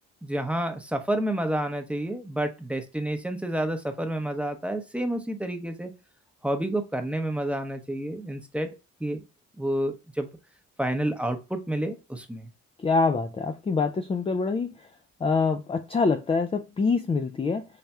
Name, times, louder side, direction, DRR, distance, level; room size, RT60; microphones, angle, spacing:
voice 1, 0.2-5.9 6.4-8.7 9.0-9.2 9.6-10.3 10.8-12.5, right 1 dB, 5° right, 0.8 m, -29 dB
voice 2, 12.8-14.9 15.2-17.7, left 4 dB, 20° left, 0.3 m, -25 dB
3.4 x 2.4 x 4.2 m
cardioid pair, 90°, 30 cm